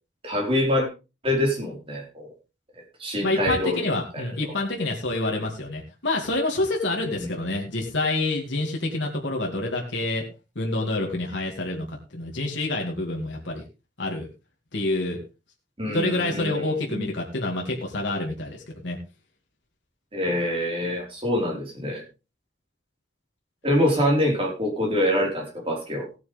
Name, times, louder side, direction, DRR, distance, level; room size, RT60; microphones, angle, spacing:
voice 1, 0.2-0.9 1.2-2.3 3.0-3.8 4.1-4.3 7.2-7.3 15.8-17.1 20.1-22.0 23.6-26.1, left 1 dB, 30° right, -1 dB, 4.5 m, -25 dB
voice 2, 3.2-10.2 10.6-11.9 12.1-13.6 14.0-14.3 14.7-15.2 15.9-19.0, left 2 dB, 70° left, 0 dB, 2.4 m, -27 dB
16.5 x 9.3 x 3.5 m, 0.30 s
head